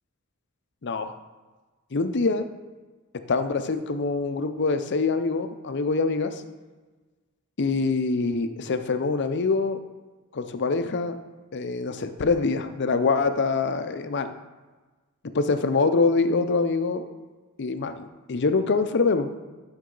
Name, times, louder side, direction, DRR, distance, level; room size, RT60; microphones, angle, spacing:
voice 1, 0.8-1.1 1.9-2.4 3.3-6.4 7.6-9.8 10.3-11.2 11.5-14.3 15.3-17.0 17.6-19.3, left 4 dB, 55° left, 9 dB, 0.6 m, -24 dB
11.5 x 5.4 x 3.9 m, 1.3 s
head